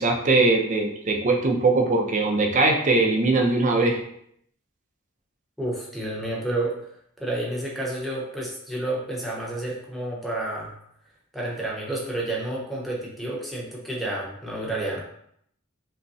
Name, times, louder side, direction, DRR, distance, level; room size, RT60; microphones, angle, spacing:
voice 1, 0.0-4.0, right 2 dB, 35° right, 2 dB, 0.6 m, -21 dB
voice 2, 5.6-6.7 7.2-10.7 11.3-15.0, right 1 dB, ahead, -4 dB, 0.8 m, -30 dB
5.3 x 2.1 x 2.7 m, 0.71 s
head